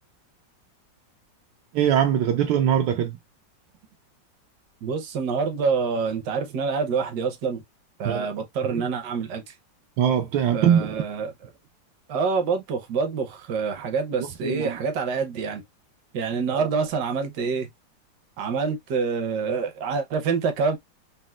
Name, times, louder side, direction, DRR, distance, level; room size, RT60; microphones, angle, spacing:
voice 1, 1.7-3.2 8.0-8.3 8.6-8.8 10.0-10.9 14.4-14.8 16.5-16.7, right 9 dB, 85° right, 1.3 m, -22 dB
voice 2, 4.8-7.6 8.0-9.5 10.5-11.3 12.1-15.6 16.1-17.7 18.4-20.8, right 5 dB, 70° right, 1.3 m, -26 dB
4.2 x 2.0 x 2.3 m
omnidirectional pair, 2.0 m